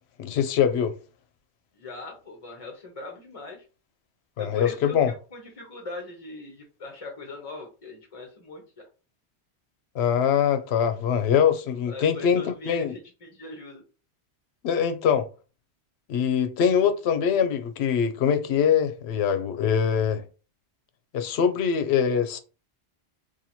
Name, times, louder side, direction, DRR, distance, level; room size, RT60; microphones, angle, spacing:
voice 1, 0.2-0.9 4.4-5.1 10.0-12.9 14.6-15.3 16.1-20.2 21.1-22.4, left 7 dB, 75° left, 0.8 m, -23 dB
voice 2, 1.7-3.6 4.4-8.6 11.7-13.8, left 2 dB, 35° left, 0.7 m, -40 dB
2.7 x 2.7 x 4.2 m
omnidirectional pair, 1.1 m